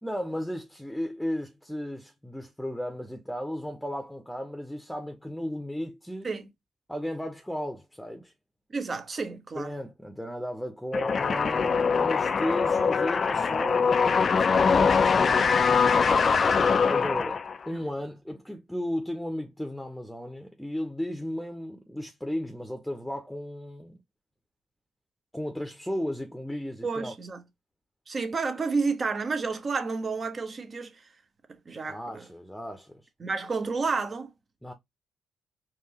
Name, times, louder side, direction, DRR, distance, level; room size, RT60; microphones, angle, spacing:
voice 1, 0.0-6.3 6.9-8.3 9.5-15.3 16.8-24.0 25.3-27.1 31.9-33.0 34.6-34.7, equal, 5° left, 0.9 m, -34 dB
voice 2, 8.7-9.7 17.7-17.8 26.8-27.4 28.1-31.1 31.7-32.2 33.2-34.3, right 4 dB, 45° right, 1.0 m, -30 dB
sound 1, 10.9-17.7, left 5 dB, 50° left, 0.4 m, -23 dB
4.6 x 2.6 x 2.9 m
hypercardioid pair, 45°, 0 cm